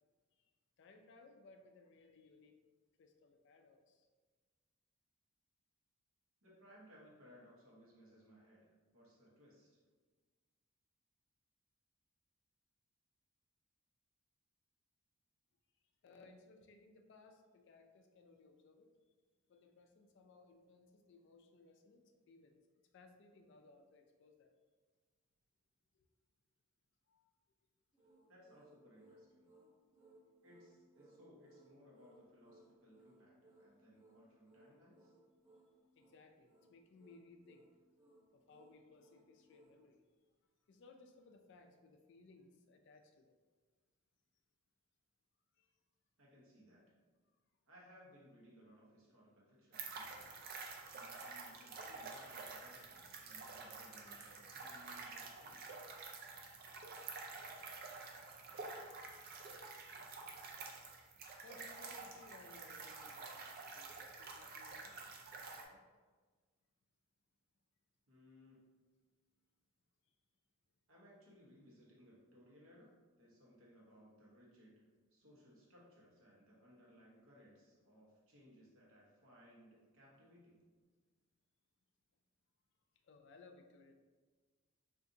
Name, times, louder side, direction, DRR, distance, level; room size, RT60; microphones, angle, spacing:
voice 1, 0.8-2.6 3.0-4.1 16.0-18.9 19.5-22.5 22.9-24.5 25.9-26.1 27.1-27.3 36.0-37.7 38.5-40.0 40.7-43.3 45.6-45.7 61.4-65.0 65.4-65.8 83.0-83.9, left 3 dB, 55° left, 5 dB, 0.3 m, -62 dB
voice 2, 6.4-9.8 28.3-29.5 30.4-35.1 46.2-46.8 47.7-50.3 50.9-55.7 68.1-68.6 70.9-74.8 75.1-80.6, equal, 70° right, -5 dB, 1.0 m, -63 dB
sound 1, 27.9-39.8, right 1 dB, 10° right, 0.8 m, -66 dB
sound 2, 49.7-65.6, right 4 dB, 40° right, 0.3 m, -49 dB
2.6 x 2.5 x 3.7 m, 1.4 s
head